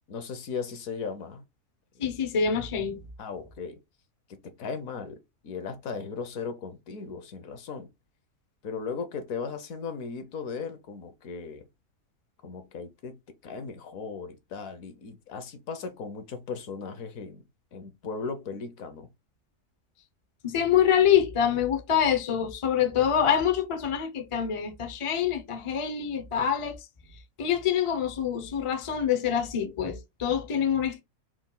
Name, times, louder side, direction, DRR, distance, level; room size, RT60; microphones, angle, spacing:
voice 1, 0.1-1.4 1.9-2.1 3.2-3.8 4.3-7.9 8.6-11.7 12.4-17.4 17.7-19.1, left 5 dB, 65° left, 1.2 m, -37 dB
voice 2, 2.0-3.0 20.4-26.8 27.4-31.0, left 8 dB, 40° left, 0.4 m, -25 dB
4.5 x 2.3 x 3.7 m
omnidirectional pair, 1.7 m